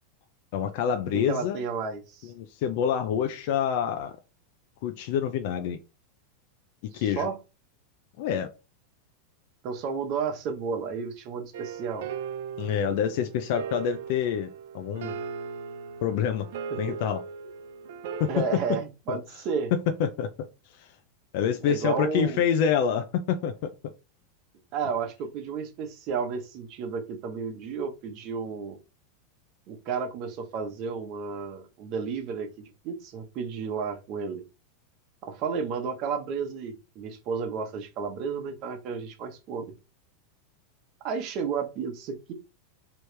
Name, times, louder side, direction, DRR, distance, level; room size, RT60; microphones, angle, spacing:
voice 1, 0.5-1.6 2.4-4.2 4.8-5.8 6.9-7.3 8.2-8.5 12.6-15.1 16.0-16.5 16.8-17.2 18.2-18.4 19.1-19.2 20.0-20.5 20.8-20.9 21.3-23.7, left 8 dB, 50° left, 0.5 m, -27 dB
voice 2, 1.1-2.3 6.9-7.4 9.6-12.1 16.7-16.8 18.3-19.7 21.6-22.4 24.7-28.8 29.7-34.4 35.2-39.7 41.0-42.3, right 5 dB, 35° right, 1.0 m, -32 dB
sound 1, 11.5-18.5, right 6 dB, 65° right, 0.6 m, -38 dB
4.7 x 3.1 x 3.3 m
supercardioid pair, 170°, 0 cm